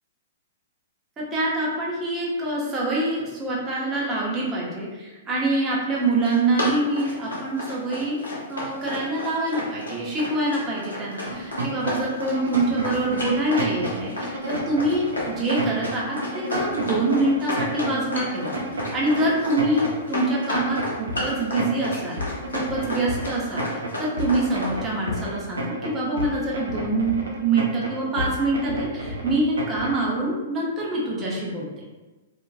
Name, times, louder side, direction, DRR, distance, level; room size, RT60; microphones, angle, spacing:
voice 1, 1.2-8.2 8.5-22.2 22.5-31.7, right 2 dB, 20° right, -5 dB, 0.9 m, -25 dB
Run, 6.0-24.8, left 2 dB, 80° left, 1.0 m, -31 dB
sound 1, 11.2-30.1, right 1 dB, 80° right, 0.6 m, -31 dB
2.8 x 2.6 x 2.5 m, 1.2 s
figure-of-eight pair, 110°, 0 cm